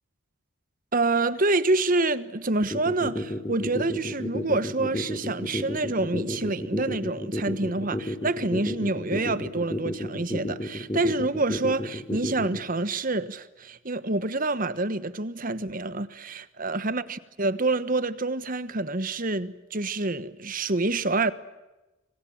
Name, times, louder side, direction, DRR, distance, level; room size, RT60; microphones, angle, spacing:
voice 1, 0.9-21.3, right 2 dB, 40° right, 1.3 m, -27 dB
sound 1, 2.6-12.6, left 1 dB, 15° left, 2.6 m, -31 dB
26.0 x 26.0 x 7.5 m
head